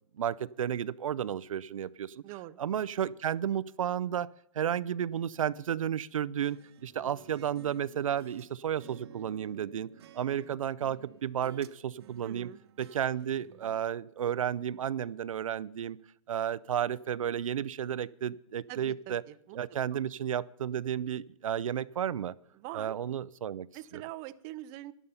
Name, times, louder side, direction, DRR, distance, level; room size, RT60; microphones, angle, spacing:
voice 1, 0.2-2.2 2.6-9.9 10.1-12.5 12.8-16.0 16.3-19.2 19.5-22.3 22.7-23.7 23.9-24.0, right 9 dB, 80° right, 17 dB, 0.4 m, -32 dB
voice 2, 2.2-2.6 12.2-12.6 18.7-19.6 19.9-20.0 22.6-23.0 23.7-24.9, right 16 dB, 30° right, 14 dB, 0.5 m, -43 dB
sound 1, 6.4-8.5 8.8-11.7 12.0-13.8, right 10 dB, 55° right, 1.0 m, -54 dB
11.0 x 11.0 x 5.5 m, 0.75 s
hypercardioid pair, 135°, 17 cm